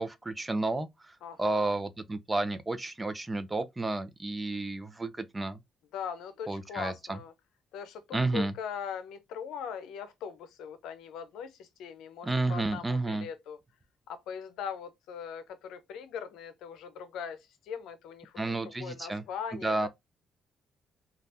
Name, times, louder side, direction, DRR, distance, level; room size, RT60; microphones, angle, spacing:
voice 1, 0.0-5.6 6.5-7.2 8.1-8.5 12.2-13.3 18.4-19.2 19.6-19.9, right 2 dB, 20° right, 0.6 m, -31 dB
voice 2, 1.2-1.7 5.9-7.3 7.7-13.6 14.1-19.9, left 7 dB, 85° left, 0.6 m, -40 dB
3.3 x 2.4 x 2.7 m
cardioid pair, 90°, 0 cm